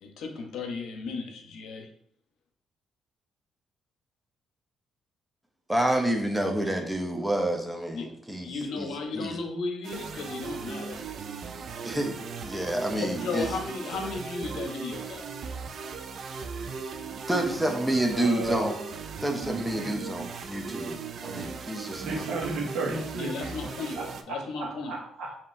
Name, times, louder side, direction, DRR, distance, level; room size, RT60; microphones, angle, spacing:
voice 1, 0.0-1.9 7.9-11.1 12.9-15.2 23.1-24.0 24.3-24.9, left 4 dB, 80° left, 4 dB, 0.7 m, -35 dB
voice 2, 5.7-8.5 8.8-8.9 9.1-9.3 11.8-13.5 17.3-18.7 19.2-22.2, right 1 dB, 5° right, 2 dB, 0.7 m, -28 dB
sound 1, 9.8-24.2, right 5 dB, 60° right, 0.4 m, -38 dB
voice 3, 18.1-18.7 19.4-20.0 22.0-25.4, right 3 dB, 75° right, -1 dB, 1.2 m, -34 dB
5.2 x 2.8 x 2.5 m, 0.67 s
cardioid pair, 90°, 0 cm